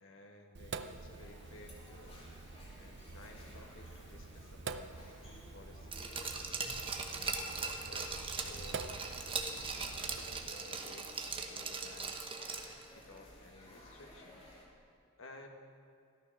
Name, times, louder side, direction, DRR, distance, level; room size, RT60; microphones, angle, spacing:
voice 1, 0.0-2.3 2.8-6.4 7.1-9.0 9.9-12.3 13.0-14.4 15.2-15.5, left 2 dB, 70° left, 3 dB, 1.8 m, -56 dB
Sink (filling or washing), 0.5-10.5, right 4 dB, 60° right, 0.7 m, -47 dB
sound 1, 1.1-14.6, left 1 dB, 30° left, 2.9 m, -57 dB
Glass, 5.9-12.9 13.2-13.3, right 4 dB, 25° right, 1.2 m, -40 dB
14.0 x 13.0 x 6.3 m, 2.4 s
head